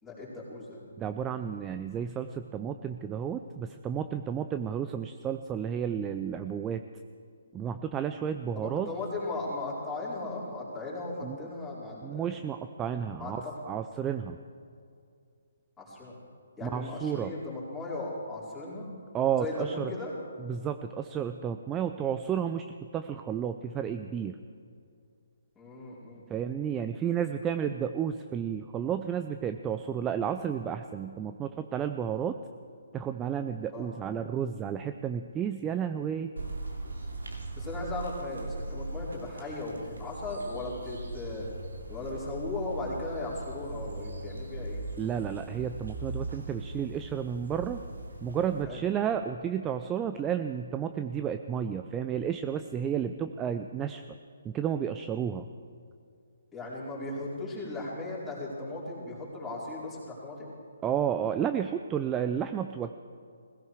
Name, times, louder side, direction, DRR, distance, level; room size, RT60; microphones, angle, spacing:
voice 1, 0.0-0.8 8.5-12.3 13.2-13.6 15.8-16.2 16.6-18.9 19.4-20.1 25.6-26.7 33.7-33.9 37.6-41.5 41.9-44.8 48.7-48.8 56.5-60.5, left 2 dB, 10° left, -7 dB, 4.6 m, -37 dB
voice 2, 1.0-6.8 7.5-8.9 11.2-11.4 12.0-14.4 16.6-17.3 19.1-19.9 20.4-24.4 26.3-32.4 32.9-36.3 45.0-47.8 48.2-54.0 54.4-55.5 60.8-62.9, right 8 dB, 15° right, 8 dB, 0.5 m, -32 dB
sound 1, 36.4-48.6, right 2 dB, 85° right, 2.7 m, -40 dB
17.5 x 16.0 x 4.8 m, 2.3 s
figure-of-eight pair, 145°, 0 cm